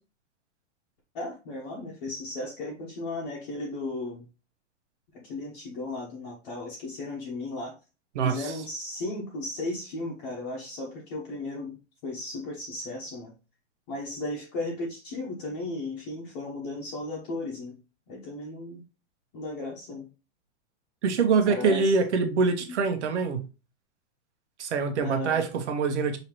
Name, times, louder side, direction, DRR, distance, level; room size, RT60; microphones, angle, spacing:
voice 1, 1.1-4.3 5.2-7.7 8.2-11.8 12.0-13.3 13.9-17.8 18.1-18.8 19.3-20.1 21.4-22.0 25.0-25.4, left 2 dB, 35° left, 1.0 m, -35 dB
voice 2, 21.0-23.4 24.6-26.2, right 5 dB, 70° right, 1.2 m, -24 dB
5.5 x 3.0 x 3.0 m
hypercardioid pair, 165°, 36 cm